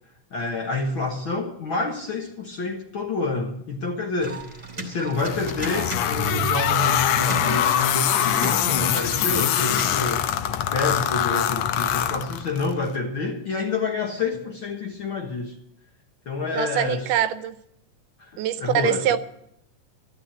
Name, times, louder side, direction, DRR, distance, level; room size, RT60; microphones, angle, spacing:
voice 1, 0.3-4.5 4.7-10.2 10.7-15.6 16.2-17.1 18.2-19.2, left 3 dB, 55° left, 1.5 m, -28 dB
sound 1, 4.2-9.8, right 3 dB, 15° right, 2.0 m, -34 dB
sound 2, 5.2-12.7, left 10 dB, 75° left, 1.7 m, -23 dB
voice 2, 16.5-17.6 18.4-19.2, right 9 dB, 80° right, 2.3 m, -23 dB
13.5 x 11.5 x 7.6 m
omnidirectional pair, 3.8 m